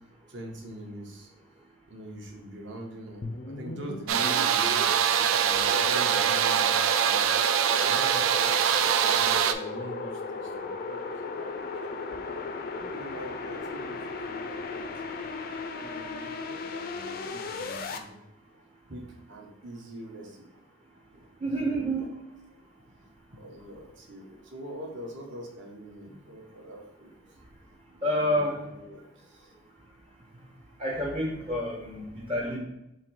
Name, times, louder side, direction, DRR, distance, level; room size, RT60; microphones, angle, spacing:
voice 1, 0.3-1.3 1.9-7.3 7.7-11.5 12.1-12.2 12.7-14.9 15.2-15.3 15.7-18.2 18.9-20.4 21.1-21.7 22.0-22.1 22.5-22.6 23.4-27.1 28.0-29.5, right 1 dB, 65° right, 1 dB, 0.9 m, -44 dB
sound 1, 3.2-18.0, left 4 dB, 45° left, 0.4 m, -36 dB
sound 2, 4.1-9.5, right 9 dB, 90° right, 0.3 m, -23 dB
voice 2, 21.4-22.1 28.0-28.7 30.8-32.6, equal, 30° right, -1 dB, 0.6 m, -28 dB
3.8 x 3.1 x 4.5 m, 0.88 s
head